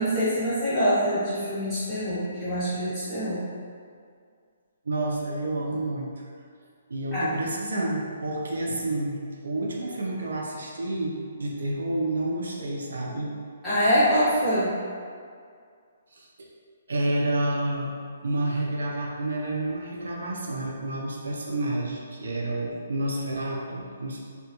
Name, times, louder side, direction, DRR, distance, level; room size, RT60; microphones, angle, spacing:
voice 1, 0.0-3.4 7.1-7.3 13.6-14.7, equal, ahead, -19 dB, 1.3 m, -24 dB
voice 2, 4.9-6.1 6.9-13.3 16.1-16.5 16.9-17.9 18.2-24.2, right 1 dB, 85° right, -2 dB, 0.4 m, -29 dB
2.8 x 2.2 x 2.9 m, 2.2 s
hypercardioid pair, 165°, 0 cm